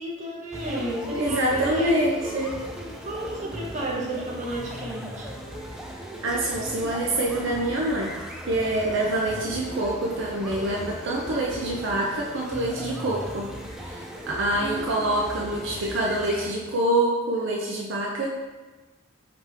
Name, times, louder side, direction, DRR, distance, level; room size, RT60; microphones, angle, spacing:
voice 1, 0.0-1.9 2.2-2.3 3.0-5.3 14.6-15.3, right 1 dB, 35° right, -3 dB, 0.8 m, -32 dB
sound 1, 0.5-16.5, equal, 5° right, 0.3 m, -37 dB
voice 2, 1.1-2.5 6.2-8.1 8.5-13.5 13.8-18.3, right 1 dB, 65° right, -2 dB, 0.5 m, -26 dB
5.0 x 2.9 x 3.4 m, 1.3 s
head